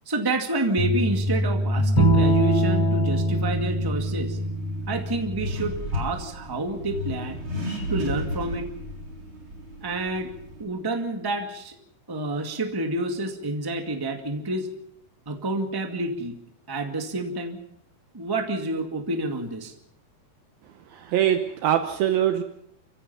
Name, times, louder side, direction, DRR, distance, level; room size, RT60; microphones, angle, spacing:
voice 1, 0.0-4.4 4.9-7.4 7.9-8.7 9.8-10.3 10.6-11.7 12.1-14.7 15.2-16.4 16.7-17.6 18.1-19.7 20.9-21.2, right 2 dB, 15° right, 6 dB, 0.8 m, -29 dB
sound 1, 0.8-5.8, equal, 55° left, 6.3 m, -26 dB
Bowed string instrument, 2.0-5.2, right 1 dB, 35° left, 5.9 m, -25 dB
Accelerating revving vroom, 3.3-10.6, left 1 dB, 30° right, 4.3 m, -34 dB
voice 2, 21.1-22.4, right 10 dB, 70° right, 8 dB, 2.7 m, -22 dB
30.0 x 16.0 x 5.7 m, 0.69 s
omnidirectional pair, 4.6 m